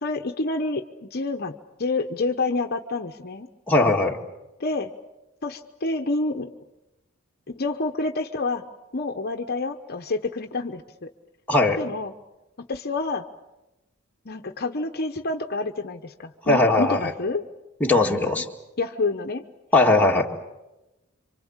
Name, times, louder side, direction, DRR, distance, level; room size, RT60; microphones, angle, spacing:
voice 1, 0.0-3.5 4.6-4.9 5.4-6.5 7.5-8.6 8.9-11.1 11.8-12.1 12.7-13.3 14.2-17.4 18.0-18.4 18.8-19.4, left 3 dB, 45° left, 6 dB, 1.0 m, -28 dB
voice 2, 3.7-4.2 11.5-11.8 16.4-17.1 17.8-18.5 19.7-20.3, left 2 dB, 10° left, -1 dB, 2.1 m, -19 dB
27.5 x 25.0 x 7.3 m, 1.0 s
head